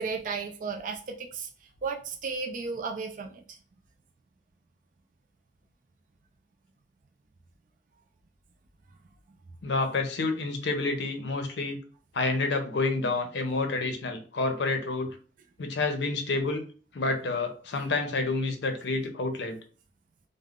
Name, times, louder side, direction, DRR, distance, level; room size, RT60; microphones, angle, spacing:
voice 1, 0.0-1.5 1.8-3.4, right 5 dB, 45° right, 3 dB, 0.4 m, -34 dB
voice 2, 9.6-11.8 12.1-15.1 15.6-16.6 16.9-19.6, left 3 dB, 70° left, 6 dB, 0.5 m, -29 dB
2.4 x 2.0 x 3.5 m, 0.39 s
head